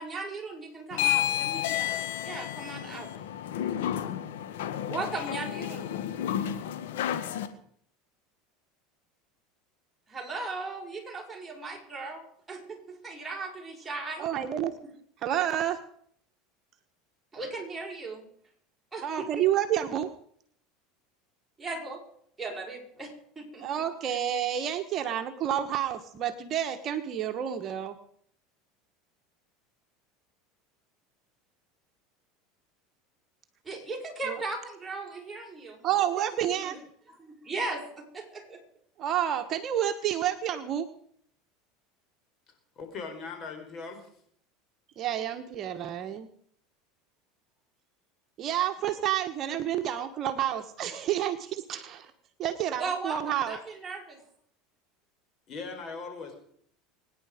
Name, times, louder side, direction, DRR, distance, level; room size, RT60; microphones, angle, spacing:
voice 1, 0.0-3.1 4.9-5.9 10.1-14.3 17.3-18.3 18.9-19.4 21.6-22.0 22.4-23.7 33.6-36.8 37.1-38.6 52.8-54.2, right 3 dB, 15° right, -1 dB, 6.2 m, -37 dB
sound 1, 0.9-7.5, left 11 dB, 80° left, 1.6 m, -31 dB
voice 2, 14.2-14.7 15.2-15.8 19.0-20.1 23.6-28.0 34.3-34.4 35.8-36.8 39.0-40.9 45.0-46.3 48.4-52.1 52.4-53.6, right 10 dB, 45° right, 6 dB, 1.3 m, -29 dB
voice 3, 42.8-44.1 55.5-56.4, left 4 dB, 40° left, 5 dB, 4.6 m, -39 dB
24.5 x 10.0 x 5.1 m, 0.63 s
hypercardioid pair, 95°, 0 cm